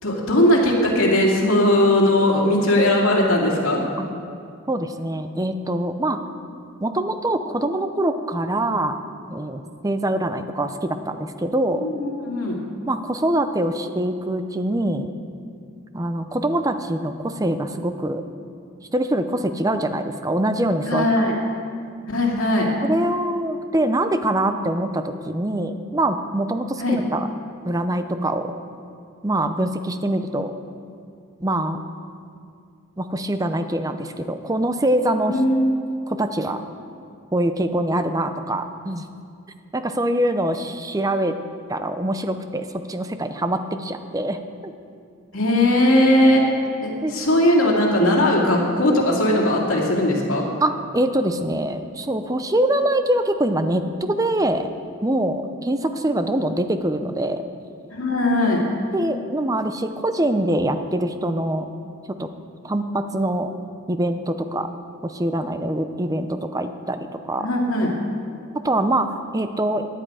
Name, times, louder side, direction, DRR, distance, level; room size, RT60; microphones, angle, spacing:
voice 1, 0.0-3.8 11.8-12.6 20.9-21.3 22.1-22.7 26.8-27.0 35.3-35.8 45.3-46.4 46.8-50.5 57.9-58.6 67.4-67.9, left 1 dB, 75° left, -1 dB, 2.6 m, -19 dB
voice 2, 4.7-6.2 6.8-9.0 9.3-11.9 12.9-15.1 15.9-18.2 18.9-21.0 22.8-27.3 27.6-28.5 29.2-30.5 31.4-31.8 33.0-35.4 36.1-36.6 37.3-39.0 39.7-41.3 41.7-44.7 47.0-47.1 50.6-54.7 55.0-57.4 58.9-61.7 62.2-62.3 62.6-63.5 63.9-64.7 65.0-67.5 68.6-69.9, right 1 dB, 15° right, 9 dB, 0.6 m, -24 dB
16.5 x 10.5 x 4.9 m, 2.3 s
head